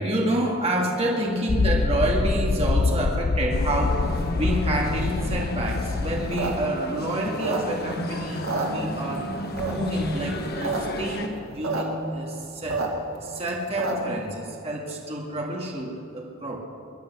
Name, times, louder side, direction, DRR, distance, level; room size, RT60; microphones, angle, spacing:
voice 1, 0.0-9.3 9.6-12.8 13.2-16.6, right 1 dB, 30° right, -1 dB, 2.1 m, -28 dB
sound 1, 1.5-6.7, left 3 dB, 30° left, 0.4 m, -25 dB
sound 2, 3.5-11.3, left 1 dB, 50° left, 1.5 m, -33 dB
sound 3, 6.2-8.0 8.3-9.2 9.6-10.0 10.4-10.8 11.1-11.2 11.3-11.8 12.2-14.2, right 3 dB, 80° right, 2.3 m, -29 dB
22.0 x 10.5 x 6.2 m, 2.8 s
head